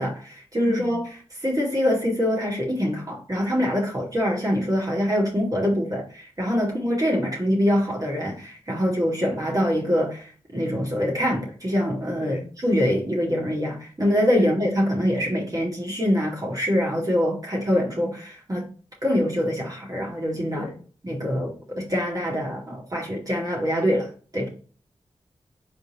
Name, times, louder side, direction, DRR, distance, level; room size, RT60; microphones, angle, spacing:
voice 1, 0.0-18.6 19.0-20.7 21.0-24.5, equal, 30° right, 2.1 m, -24 dB
voice 2, 0.6-1.0 6.6-6.8 12.2-12.5 14.4-14.5 20.5-20.8, left 3 dB, 85° left, 1.5 m, -36 dB
4.2 x 3.4 x 3.2 m
cardioid pair, 45°, 11 cm